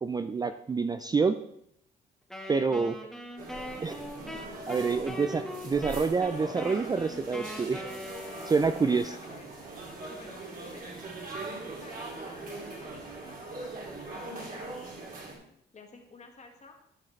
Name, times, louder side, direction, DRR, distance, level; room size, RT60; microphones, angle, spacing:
voice 1, 0.0-1.4 2.5-3.0 3.8-4.0 4.7-7.8 8.5-9.2, right 4 dB, 20° right, 9 dB, 0.3 m, -27 dB
Wind instrument woodwind instrument, 2.3-9.1, left 1 dB, ahead, 1.5 m, -41 dB
sound 1, 3.4-15.4, right 2 dB, 45° right, 2.5 m, -41 dB
voice 2, 4.8-5.2 5.7-5.9 8.8-9.5 10.1-15.4 15.7-16.8, left 4 dB, 35° left, 3 dB, 1.6 m, -53 dB
12.0 x 6.4 x 3.2 m, 0.73 s
cardioid pair, 90°, 20 cm